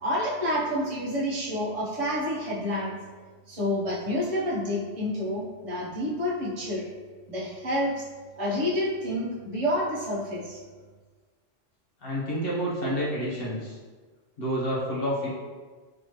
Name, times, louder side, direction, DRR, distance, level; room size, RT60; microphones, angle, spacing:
voice 1, 0.0-3.0 3.5-6.9 7.3-8.0 8.4-10.6, left 1 dB, 30° right, -6 dB, 1.0 m, -28 dB
voice 2, 12.0-13.8 14.4-15.3, equal, 50° left, -6 dB, 1.2 m, -29 dB
4.2 x 3.1 x 3.1 m, 1.4 s
omnidirectional pair, 1.2 m